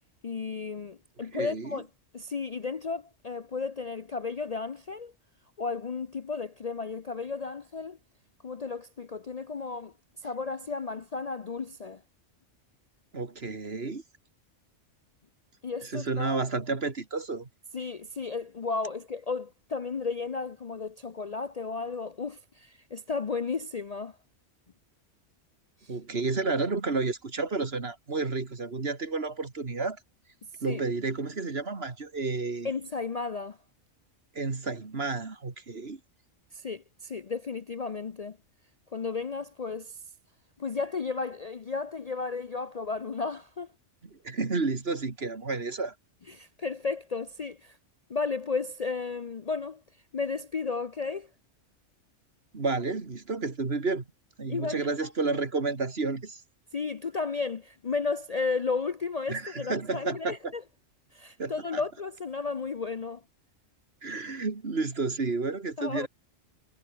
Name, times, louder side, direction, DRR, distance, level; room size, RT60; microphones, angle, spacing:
voice 1, 0.2-1.9 2.1-5.1 5.6-8.0 8.4-9.9 10.2-12.0 15.6-16.4 17.7-24.2 30.6-30.8 32.6-33.6 36.5-38.4 38.9-40.0 40.6-43.7 46.3-47.8 48.1-49.8 50.1-51.3 54.5-54.9 55.3-55.4 56.7-60.6 61.1-63.2 65.8-66.1, left 4 dB, 40° left, 0.7 m, -33 dB
voice 2, 1.3-1.7 13.1-14.0 15.8-17.5 25.9-30.0 30.6-32.7 34.3-36.0 44.0-45.9 52.5-54.0 54.4-56.4 59.3-60.5 61.4-61.8 64.0-66.1, right 3 dB, 55° right, 2.5 m, -31 dB
omnidirectional pair, 1.3 m